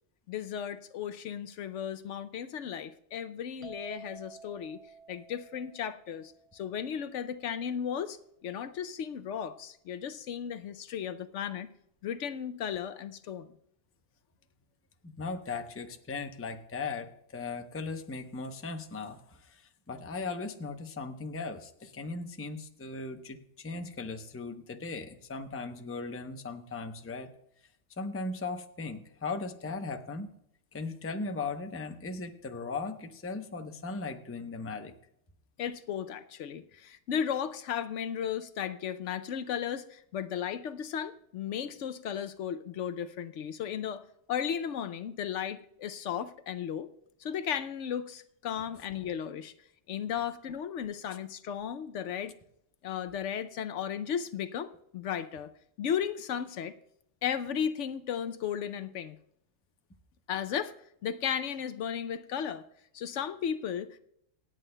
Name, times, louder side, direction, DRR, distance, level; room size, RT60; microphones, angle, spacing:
voice 1, 0.3-4.8 5.1-11.7 12.0-13.5 35.6-44.0 44.3-46.9 47.2-49.5 49.9-52.4 52.8-55.5 55.8-56.7 57.2-59.2 60.3-60.7 61.0-62.6 62.9-64.0, left 8 dB, 70° left, 12 dB, 0.9 m, -35 dB
sound 1, 3.6-7.2, right 5 dB, 50° right, 0.3 m, -52 dB
voice 2, 15.0-27.3 27.9-30.3 30.7-34.9, left 3 dB, 15° left, 6 dB, 0.6 m, -38 dB
26.5 x 9.0 x 2.2 m, 0.75 s
omnidirectional pair, 1.3 m